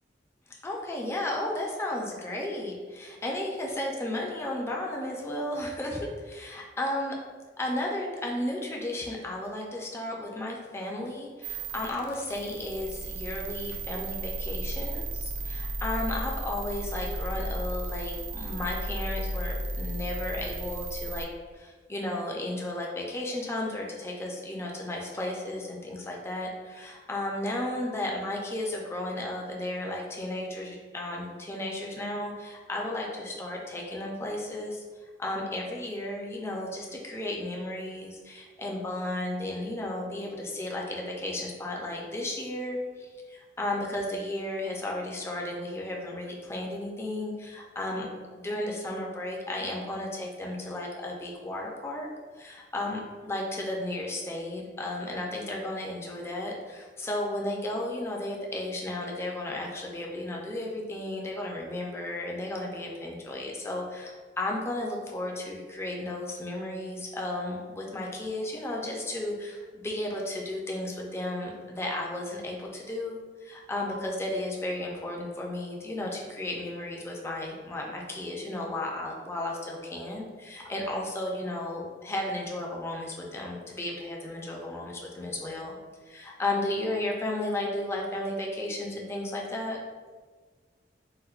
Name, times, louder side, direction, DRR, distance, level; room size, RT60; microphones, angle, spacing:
voice 1, 0.6-7.1 7.6-21.3 21.5-34.8 35.2-48.1 48.4-52.1 52.4-85.8 86.1-89.8, left 1 dB, 15° left, -1 dB, 0.4 m, -34 dB
sound 1, 11.4-21.3, right 1 dB, 50° right, 0.3 m, -34 dB
4.2 x 2.1 x 2.3 m, 1.5 s
head